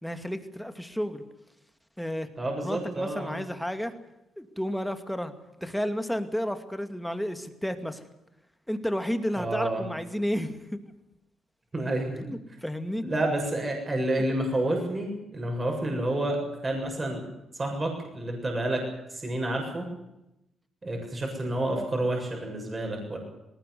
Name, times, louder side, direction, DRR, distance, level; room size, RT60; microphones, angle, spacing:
voice 1, 0.0-1.2 2.0-2.3 2.6-3.9 4.4-5.3 5.6-8.0 8.7-10.8 12.2-13.1, equal, ahead, 8 dB, 2.5 m, -32 dB
voice 2, 2.4-3.3 9.4-9.8 11.7-12.3 13.0-17.2 17.5-18.8 19.1-19.9 20.8-23.2, right 1 dB, 25° right, 2 dB, 7.4 m, -29 dB
19.5 x 18.5 x 9.5 m, 0.90 s
cardioid pair, 90°, 0 cm